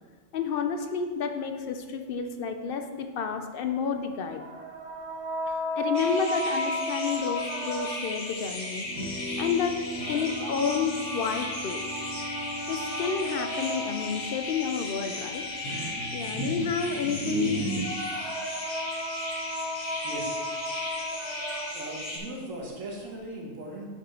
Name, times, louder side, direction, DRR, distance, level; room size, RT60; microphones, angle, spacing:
voice 1, 0.3-4.4 5.5-8.9 9.4-9.8 10.1-11.8 12.7-15.4 16.1-17.6, left 6 dB, 65° left, 6 dB, 0.6 m, -30 dB
sound 1, 4.3-8.3 9.8-14.3 17.5-22.0, left 1 dB, 65° right, 1.5 m, -34 dB
sound 2, 5.9-22.2, left 1 dB, 30° left, 1.0 m, -37 dB
sound 3, 8.8-17.9, right 1 dB, 85° left, 1.6 m, -36 dB
voice 2, 20.0-20.4 21.7-23.9, right 1 dB, 85° right, -1 dB, 1.7 m, -38 dB
5.4 x 5.3 x 5.5 m, 1.5 s
omnidirectional pair, 1.3 m